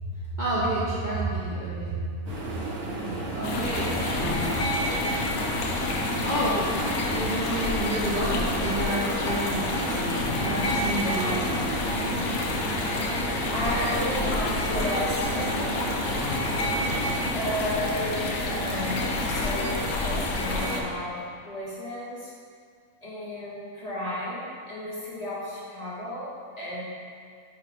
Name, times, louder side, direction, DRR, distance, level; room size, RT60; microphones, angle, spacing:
voice 1, 0.4-2.0 2.8-4.5 6.2-11.5, right 1 dB, 40° right, -8 dB, 0.8 m, -30 dB
sound 1, 2.2-20.7, right 2 dB, 65° right, 2.0 m, -33 dB
sound 2, 3.4-20.8, left 2 dB, 75° left, 1.2 m, -29 dB
voice 2, 13.5-15.8 17.3-22.3 23.0-26.8, left 1 dB, 30° left, -9 dB, 1.3 m, -33 dB
4.8 x 4.7 x 4.9 m, 2.2 s
omnidirectional pair, 1.5 m